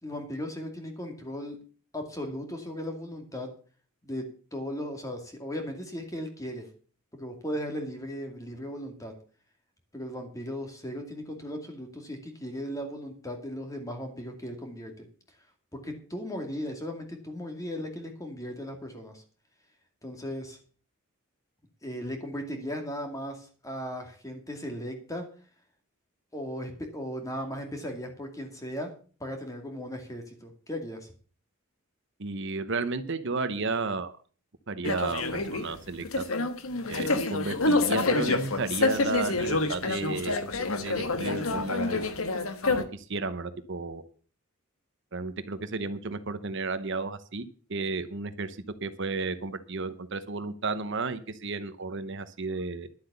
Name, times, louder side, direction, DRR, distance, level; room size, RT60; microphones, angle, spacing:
voice 1, 0.0-1.6 1.9-3.5 4.0-6.7 7.2-9.1 9.9-15.1 15.7-19.2 20.0-20.6 21.8-25.3 26.3-28.9 29.2-31.1, equal, 15° left, 4 dB, 2.3 m, -37 dB
voice 2, 32.2-34.2 34.7-36.2 36.9-42.1 42.7-44.0 45.1-52.9, right 3 dB, 55° right, 11 dB, 0.9 m, -33 dB
sound 1, 34.8-42.8, left 3 dB, 75° left, 1.4 m, -28 dB
11.5 x 7.9 x 6.8 m, 0.40 s
head